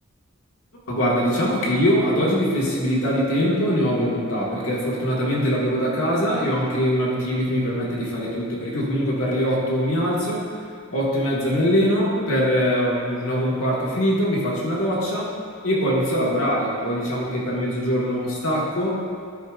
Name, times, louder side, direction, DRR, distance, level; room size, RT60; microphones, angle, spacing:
voice 1, 0.9-10.5 10.9-15.3 15.6-19.0, equal, 75° left, -5 dB, 1.6 m, -22 dB
11.0 x 4.8 x 2.4 m, 2.3 s
head